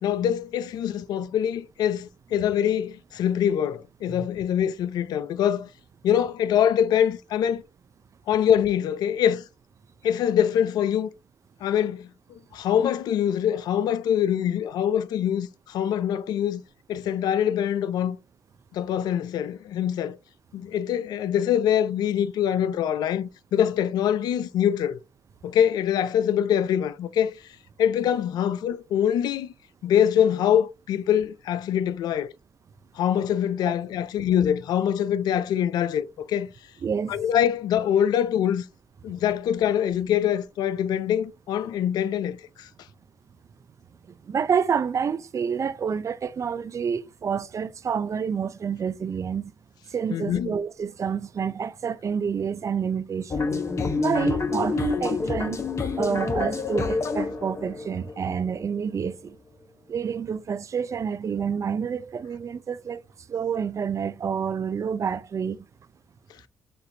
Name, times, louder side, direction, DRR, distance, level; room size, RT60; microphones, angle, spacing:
voice 1, 0.0-5.7 6.0-7.6 8.3-9.4 10.0-11.1 11.6-16.6 16.9-18.2 18.7-20.2 20.5-25.0 25.4-27.3 27.8-29.5 29.8-32.3 32.9-36.5 37.1-38.7 39.0-42.7 50.1-50.5, left 9 dB, 70° left, 0.4 m, -24 dB
voice 2, 36.8-37.1 44.2-49.5 49.9-53.5 54.0-55.6 56.0-59.4 59.9-63.0 63.3-65.7, right 7 dB, 45° right, 0.5 m, -28 dB
sound 1, 53.3-59.1, left 4 dB, 40° left, 1.0 m, -28 dB
6.7 x 2.6 x 2.7 m
hypercardioid pair, 45°, 7 cm